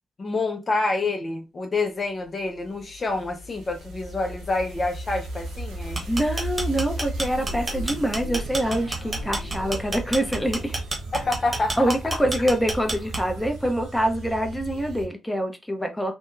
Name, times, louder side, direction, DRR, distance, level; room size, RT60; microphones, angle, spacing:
voice 1, 0.2-6.1 11.1-12.0, left 3 dB, 45° left, 0.5 m, -27 dB
sound 1, 2.2-15.1, right 1 dB, 85° right, 0.6 m, -35 dB
sound 2, 5.8-13.5, right 2 dB, 35° right, 0.9 m, -30 dB
voice 2, 6.1-10.8 11.8-16.1, equal, 10° left, 0.7 m, -25 dB
2.7 x 2.2 x 2.3 m
hypercardioid pair, 40°, 0 cm